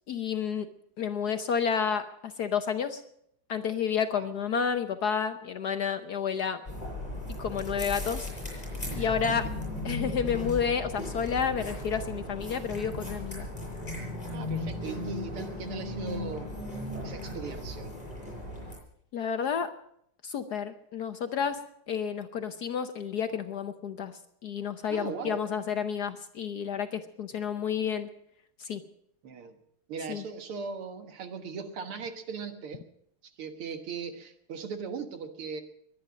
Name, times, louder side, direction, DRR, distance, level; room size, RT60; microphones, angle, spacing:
voice 1, 0.1-0.7 1.0-3.0 3.5-6.6 7.3-8.3 8.9-9.5 9.8-13.5 19.1-19.7 20.2-28.1 28.6-28.8 30.1-30.2, left 7 dB, 60° left, 8 dB, 1.1 m, -30 dB
sound 1, 6.7-18.8, left 1 dB, 15° left, 7.6 m, -36 dB
voice 2, 14.3-16.5 17.0-17.9 24.9-25.4 29.2-29.6 29.9-32.8 33.2-35.6, right 5 dB, 80° right, 7 dB, 2.4 m, -39 dB
22.0 x 10.0 x 6.3 m, 0.71 s
omnidirectional pair, 2.4 m